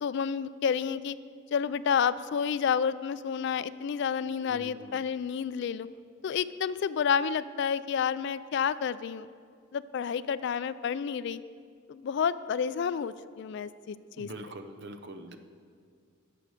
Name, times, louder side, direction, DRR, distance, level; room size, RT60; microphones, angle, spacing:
voice 1, 0.0-1.2 1.5-5.9 6.2-9.3 9.7-11.4 11.9-14.3, left 7 dB, 55° left, 16 dB, 0.3 m, -30 dB
voice 2, 4.4-5.0 14.2-15.4, right 1 dB, 55° right, 8 dB, 0.7 m, -44 dB
11.0 x 6.8 x 6.5 m, 2.2 s
head